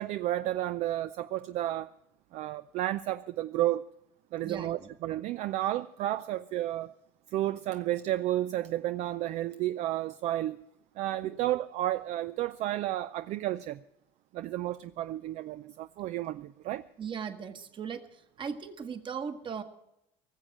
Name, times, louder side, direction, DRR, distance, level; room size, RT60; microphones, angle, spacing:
voice 1, 0.0-1.9 2.3-3.8 4.3-6.9 7.3-10.6 11.0-13.8 14.3-16.8, right 14 dB, 60° right, 0.4 m, -32 dB
voice 2, 4.4-4.9 11.2-11.4 17.0-18.0 18.4-19.6, right 6 dB, 40° right, 1.5 m, -38 dB
19.0 x 7.3 x 9.0 m
supercardioid pair, 85°, 13 cm